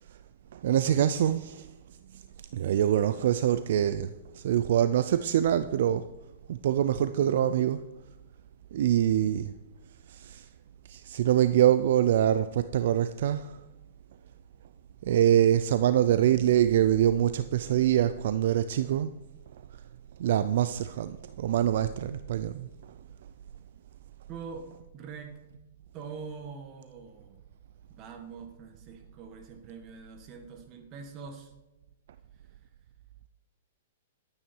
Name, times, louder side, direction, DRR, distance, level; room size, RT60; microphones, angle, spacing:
voice 1, 0.5-1.7 2.5-6.1 6.5-7.8 8.7-9.5 10.1-10.4 10.9-13.6 15.0-19.1 20.2-22.7, right 11 dB, 60° right, 0.5 m, -25 dB
voice 2, 24.3-25.4 25.9-27.4 27.9-31.5 32.4-32.6, right 5 dB, 30° right, 1.7 m, -44 dB
12.5 x 8.9 x 4.6 m
hypercardioid pair, 150°, 0 cm